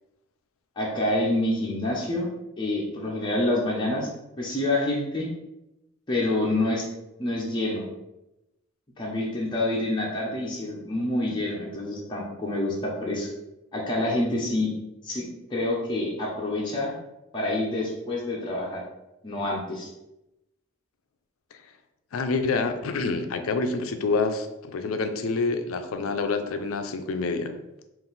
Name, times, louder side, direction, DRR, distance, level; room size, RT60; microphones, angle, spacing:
voice 1, 0.8-2.3 2.6-4.1 4.4-5.3 6.1-6.9 7.2-7.9 9.0-13.3 13.7-14.7 15.0-15.2 15.5-16.9 17.3-18.8 19.2-19.9, left 1 dB, 25° left, -4 dB, 0.6 m, -27 dB
voice 2, 22.1-27.5, left 4 dB, 80° left, 8 dB, 0.4 m, -27 dB
3.8 x 2.5 x 3.9 m, 0.93 s
head